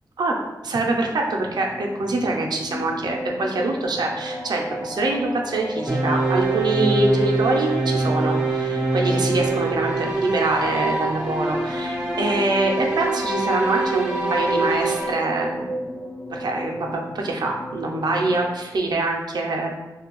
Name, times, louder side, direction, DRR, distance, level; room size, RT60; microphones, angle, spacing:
voice 1, 0.6-15.8 16.3-19.9, right 2 dB, 75° right, 0 dB, 0.4 m, -24 dB
sound 1, 1.2-18.5, equal, 30° left, 0.6 m, -34 dB
sound 2, 5.9-15.1, right 3 dB, 10° right, 0.4 m, -24 dB
2.5 x 2.2 x 2.9 m, 1.0 s
wide cardioid pair, 135°, 7 cm